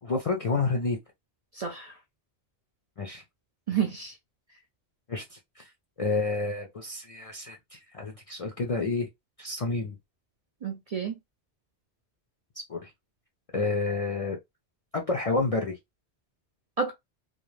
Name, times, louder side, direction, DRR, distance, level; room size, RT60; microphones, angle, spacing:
voice 1, 0.0-1.0 3.0-3.2 5.1-5.7 6.0-9.1 9.4-9.9 12.7-12.9 13.5-14.4 14.9-15.8, left 3 dB, 50° left, 0.4 m, -29 dB
voice 2, 1.5-1.9 3.7-4.2 10.6-11.2 16.8-16.9, right 6 dB, 55° right, 0.4 m, -30 dB
2.4 x 2.2 x 3.1 m
omnidirectional pair, 1.1 m